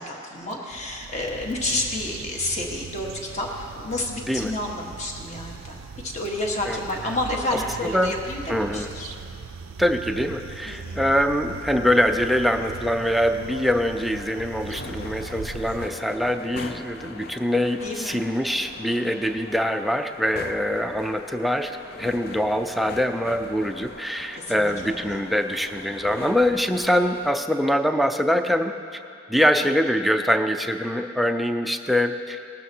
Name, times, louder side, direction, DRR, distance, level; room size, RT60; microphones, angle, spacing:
voice 1, 0.0-9.1 10.7-11.0 17.8-18.2 24.4-25.2, left 1 dB, 35° left, -1 dB, 1.4 m, -30 dB
sound 1, 0.7-15.9, right 5 dB, 85° right, 0.4 m, -40 dB
voice 2, 7.8-8.1 8.5-8.9 9.8-21.7 22.0-28.7 29.3-32.4, equal, ahead, 6 dB, 0.4 m, -23 dB
sound 2, 11.5-27.3, left 3 dB, 50° left, 0.5 m, -42 dB
19.0 x 12.0 x 2.8 m, 2.6 s
head